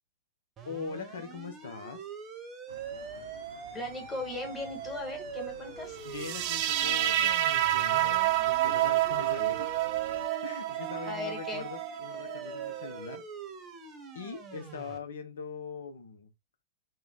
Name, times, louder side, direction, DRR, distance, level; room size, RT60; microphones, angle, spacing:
voice 1, 0.6-2.0 6.0-9.7 10.4-13.2 14.1-16.3, left 5 dB, 70° left, 0.6 m, -41 dB
sound 1, 0.6-15.0, right 6 dB, 25° right, 0.8 m, -43 dB
sound 2, 2.7-10.3, right 4 dB, 80° right, 0.6 m, -50 dB
voice 2, 3.7-6.0 11.0-11.6, left 2 dB, 10° left, 1.5 m, -38 dB
sound 3, 6.1-13.2, right 14 dB, 45° right, 0.3 m, -29 dB
3.1 x 2.2 x 3.8 m
hypercardioid pair, 105°, 0 cm